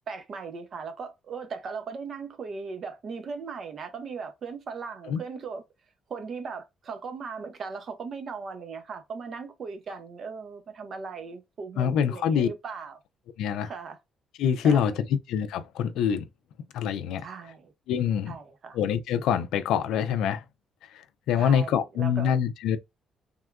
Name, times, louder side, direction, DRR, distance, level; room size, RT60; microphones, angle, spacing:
voice 1, 0.1-5.6 6.1-13.0 13.6-14.0 14.6-15.0 17.2-17.7 18.3-18.8 21.4-22.3, right 5 dB, 55° right, 0.8 m, -38 dB
voice 2, 11.8-12.5 13.4-13.7 14.4-14.9 15.3-16.3 16.7-17.3 17.9-18.4 18.7-20.4 20.9-22.8, left 8 dB, 90° left, 0.4 m, -25 dB
3.5 x 2.3 x 2.2 m
cardioid pair, 90°, 0 cm